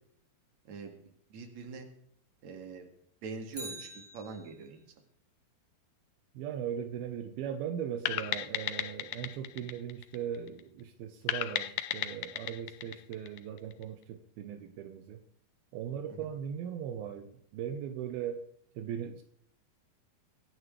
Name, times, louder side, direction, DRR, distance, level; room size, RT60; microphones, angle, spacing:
voice 1, 0.6-0.9 1.3-1.9 2.4-2.9 3.2-4.8 16.1-16.3, right 4 dB, 50° right, 4 dB, 3.1 m, -43 dB
Bicycle, 3.5-4.9 13.2-13.3, right 1 dB, 10° right, 1.8 m, -46 dB
voice 2, 6.3-15.2 15.7-18.5 18.8-19.2, right 9 dB, 80° right, 7 dB, 2.8 m, -39 dB
sound 1, 8.1-10.6 11.3-13.8, left 13 dB, 85° left, 1.8 m, -35 dB
25.0 x 9.6 x 3.3 m, 0.68 s
omnidirectional pair, 4.4 m